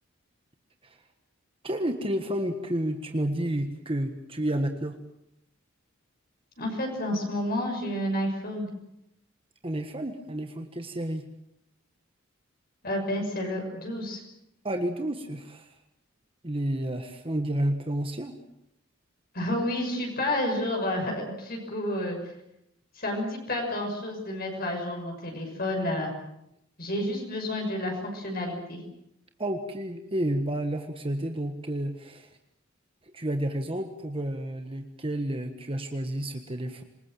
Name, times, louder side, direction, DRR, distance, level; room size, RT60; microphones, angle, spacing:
voice 1, 1.6-4.9 9.6-11.2 14.6-15.7 16.4-18.4 29.4-32.3 33.0-36.8, right 1 dB, 25° right, 6 dB, 1.5 m, -30 dB
voice 2, 6.6-8.7 12.8-14.2 19.3-22.2 22.9-26.1 26.8-28.8, left 1 dB, 45° left, 1 dB, 6.1 m, -30 dB
26.5 x 21.0 x 7.6 m, 0.79 s
head